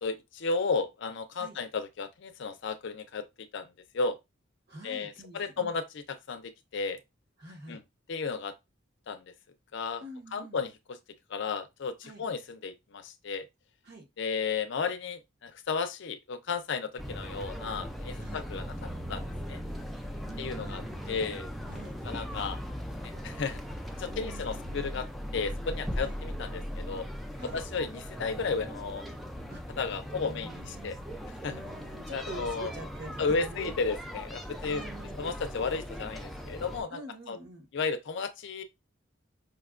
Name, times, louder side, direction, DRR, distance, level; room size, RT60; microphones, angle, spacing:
voice 1, 0.0-3.2 3.5-3.7 3.9-4.2 4.8-5.8 6.3-7.0 7.7-7.8 8.1-8.5 9.1-9.2 9.7-10.0 10.3-10.7 11.3-13.5 14.2-19.6 20.4-20.8 21.1-21.5 22.0-22.6 23.2-23.6 24.0-25.1 25.3-27.1 27.5-29.1 29.8-31.0 31.4-31.5 32.1-32.7 33.2-34.8 35.2-37.0 37.3-37.4 37.7-38.6, left 4 dB, 65° left, 0.5 m, -33 dB
voice 2, 4.7-5.7 7.4-7.8 10.0-10.7 12.0-12.2 13.8-14.1 18.2-18.4 20.3-21.3 21.7-22.0 24.1-25.0 26.0-26.2 27.4-27.6 29.5-29.6 29.9-30.9 31.4-33.8 34.6-35.3 36.9-37.7, right 2 dB, 55° right, 1.1 m, -46 dB
sound 1, 17.0-36.8, equal, ahead, 0.3 m, -39 dB
5.0 x 2.2 x 2.4 m
head